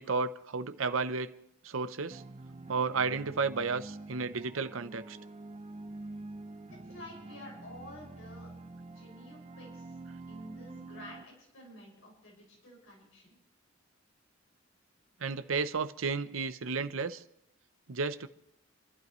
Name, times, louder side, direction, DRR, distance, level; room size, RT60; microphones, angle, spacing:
voice 1, 0.0-1.3 1.6-2.2 2.7-5.2 15.2-17.2 17.9-18.3, right 4 dB, 80° right, 0.7 m, -32 dB
sound 1, 2.1-11.2, right 2 dB, 30° right, 0.5 m, -47 dB
voice 2, 6.7-8.5 8.9-10.0 10.3-13.4, left 1 dB, 80° left, 6.1 m, -50 dB
28.5 x 12.0 x 3.1 m
head